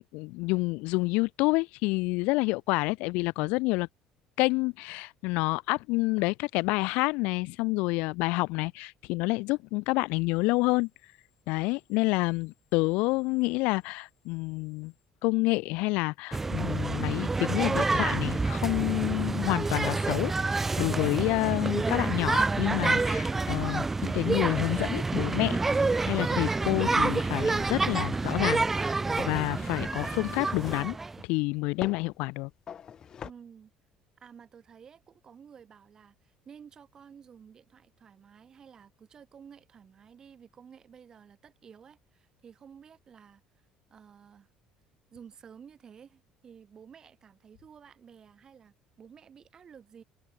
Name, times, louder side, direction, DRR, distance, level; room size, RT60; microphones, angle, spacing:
voice 1, 0.1-3.9 4.4-10.9 11.5-14.9 15.2-25.6 26.0-28.6 29.2-31.0 31.2-32.5, left 25 dB, 80° left, 0.5 m, -28 dB
sound 1, 16.3-31.2, right 3 dB, 15° right, 0.4 m, -28 dB
sound 2, 27.2-28.2 29.2-29.4 30.0-31.0 31.8-32.1 32.7-33.3, left 8 dB, 35° left, 0.9 m, -42 dB
voice 2, 33.2-33.7 34.2-43.4 43.9-44.5 45.1-50.0, right 7 dB, 30° right, 5.2 m, -52 dB
cardioid pair, 145°, 2 cm